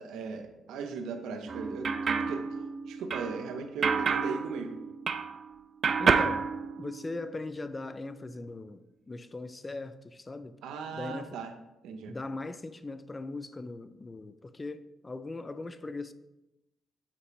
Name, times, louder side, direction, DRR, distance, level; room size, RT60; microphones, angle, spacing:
voice 1, 0.0-2.5 2.8-4.8 10.6-11.5 11.8-12.1, right 5 dB, 85° right, 0.7 m, -38 dB
sound 1, 1.5-5.5 5.8-7.3, right 5 dB, 45° right, 0.4 m, -29 dB
voice 2, 6.0-6.5 6.8-10.6 10.9-11.4 12.1-16.1, left 3 dB, 25° left, 0.4 m, -39 dB
7.1 x 4.8 x 3.2 m
cardioid pair, 90°, 0 cm